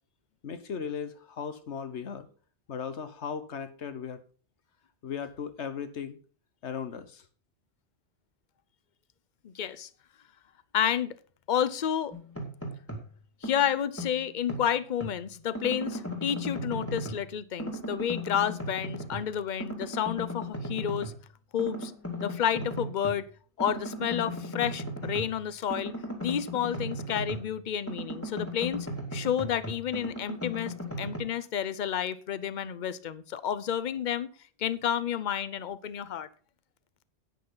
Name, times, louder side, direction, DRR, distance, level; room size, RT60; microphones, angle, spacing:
voice 1, 0.4-2.3 2.7-4.2 5.0-6.2 6.6-7.3, left 7 dB, 80° left, 1.4 m, -37 dB
voice 2, 9.4-9.9 10.7-11.2 11.5-12.2 13.4-21.1 21.5-21.9 22.2-23.3 23.6-25.9 26.2-28.9 29.1-34.3 34.6-36.3, left 9 dB, 50° left, 0.8 m, -30 dB
sound 1, 12.1-13.1 13.4-15.2 15.5-17.3 17.6-19.3 19.6-21.2 21.6-23.2 23.6-27.6 27.9-31.2, equal, 10° left, 2.3 m, -37 dB
10.5 x 9.3 x 3.9 m
omnidirectional pair, 1.1 m